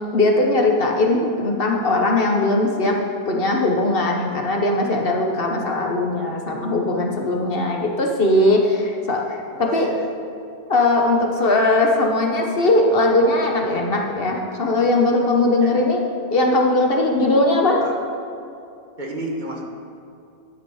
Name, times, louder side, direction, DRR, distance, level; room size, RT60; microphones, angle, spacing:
voice 1, 0.1-3.0 3.3-9.9 10.7-16.0 16.3-17.8, left 2 dB, 55° left, 1 dB, 1.2 m, -19 dB
voice 2, 9.6-10.1 15.6-15.7 17.8-17.9 19.0-19.6, right 1 dB, 40° right, -1 dB, 1.4 m, -30 dB
11.0 x 8.1 x 4.8 m, 2.6 s
omnidirectional pair, 1.2 m